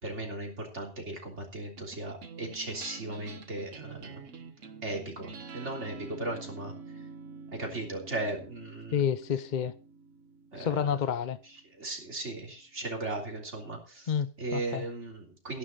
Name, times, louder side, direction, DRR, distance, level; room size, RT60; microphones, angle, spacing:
voice 1, 0.0-4.2 4.8-6.7 7.5-9.0 10.5-10.8 11.7-15.6, right 2 dB, 65° right, 3.8 m, -37 dB
sound 1, 1.8-12.4, right 4 dB, 85° right, 1.7 m, -47 dB
voice 2, 8.9-9.7 10.6-11.4 14.1-14.8, left 8 dB, 45° left, 0.7 m, -29 dB
13.5 x 11.0 x 4.0 m
omnidirectional pair, 1.3 m